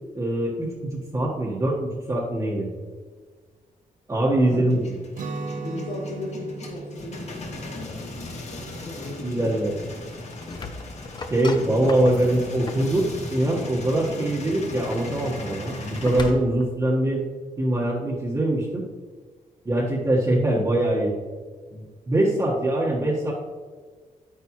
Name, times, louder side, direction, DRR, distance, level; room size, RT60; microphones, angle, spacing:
voice 1, 0.1-2.7 4.1-4.8 9.2-9.7 11.3-17.2 17.6-18.8 19.6-21.1 21.7-23.3, right 1 dB, 20° right, -5 dB, 1.4 m, -23 dB
voice 2, 4.4-4.8 5.5-9.7 11.6-12.2, left 2 dB, 90° left, -7 dB, 2.1 m, -36 dB
Male speech man speaking / Vehicle / Engine starting, 4.7-16.3, left 2 dB, 50° left, 1.7 m, -38 dB
Guitar, 5.1-11.0, right 3 dB, 70° right, 0.9 m, -38 dB
sound 1, 10.1-12.9 14.5-16.7, left 3 dB, 30° left, 0.7 m, -37 dB
9.6 x 9.4 x 3.1 m, 1.5 s
cardioid pair, 135°, 14 cm